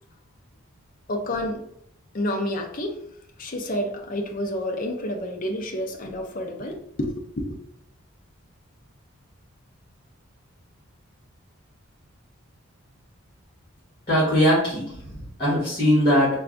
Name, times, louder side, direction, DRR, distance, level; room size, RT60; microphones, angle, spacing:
voice 1, 1.1-1.6 2.1-3.0 3.4-7.6, left 1 dB, 40° left, 2 dB, 0.5 m, -29 dB
voice 2, 14.1-16.4, equal, 25° left, -8 dB, 1.4 m, -21 dB
3.3 x 2.3 x 3.7 m, 0.69 s
head